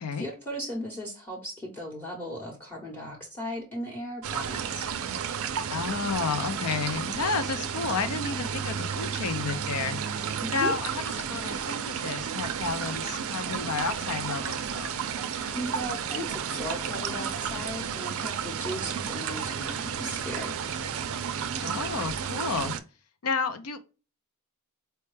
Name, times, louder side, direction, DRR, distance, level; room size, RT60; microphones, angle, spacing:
voice 1, 0.2-4.9 10.4-10.7 15.5-20.6, equal, 10° left, 0.9 m, -36 dB
sound 1, 4.2-22.8, right 7 dB, 65° right, 0.4 m, -32 dB
voice 2, 5.7-10.0 10.5-15.0 21.6-22.7 23.2-23.8, left 4 dB, 80° left, 0.6 m, -31 dB
4.4 x 2.2 x 3.1 m
head